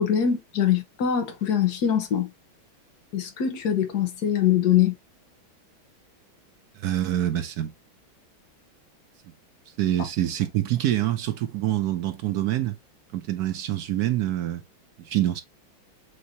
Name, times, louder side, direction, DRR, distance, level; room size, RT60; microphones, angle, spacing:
voice 1, 0.0-2.3 3.1-4.9, left 9 dB, 55° left, 1.4 m, -23 dB
voice 2, 6.8-7.7 9.8-12.8 13.1-14.6 15.0-15.4, right 13 dB, 80° right, 0.8 m, -26 dB
6.2 x 2.7 x 2.8 m
omnidirectional pair, 2.3 m